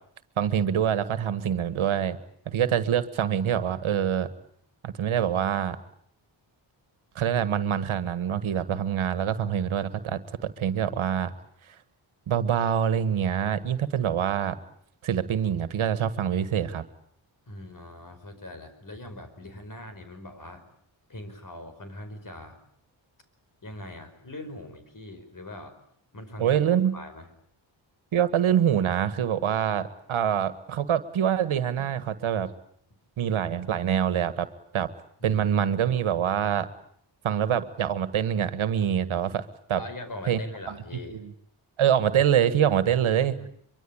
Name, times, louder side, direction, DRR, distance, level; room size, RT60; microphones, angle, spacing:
voice 1, 0.4-2.2 2.5-4.3 4.8-5.8 7.2-11.3 12.3-14.6 15.0-16.8 26.4-26.9 28.1-32.5 33.2-34.5 34.7-34.9 35.2-36.7 37.2-39.4 39.7-39.8 40.3-40.4 41.8-43.3, right 9 dB, 85° right, 13 dB, 1.8 m, -25 dB
voice 2, 17.5-20.7 21.1-22.6 23.6-25.8 26.1-26.5 26.9-27.3 35.2-35.4 39.8-41.2 42.8-43.5, left 1 dB, 40° left, 9 dB, 5.3 m, -42 dB
24.5 x 23.5 x 8.8 m, 0.65 s
cardioid pair, 85°, 47 cm